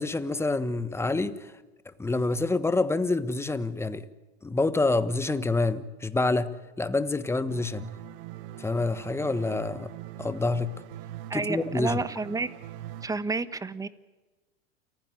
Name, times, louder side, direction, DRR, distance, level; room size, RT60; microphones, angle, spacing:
voice 1, 0.0-1.5 2.0-4.0 4.4-6.5 6.8-7.9 8.6-9.9 10.2-10.7 11.3-12.0, left 3 dB, 10° left, 1.3 m, -27 dB
sound 1, 7.5-13.1, right 13 dB, 55° right, 1.4 m, -42 dB
voice 2, 11.3-12.5 13.0-13.9, right 3 dB, 10° right, 1.2 m, -30 dB
29.0 x 16.0 x 9.4 m
hypercardioid pair, 110°, 32 cm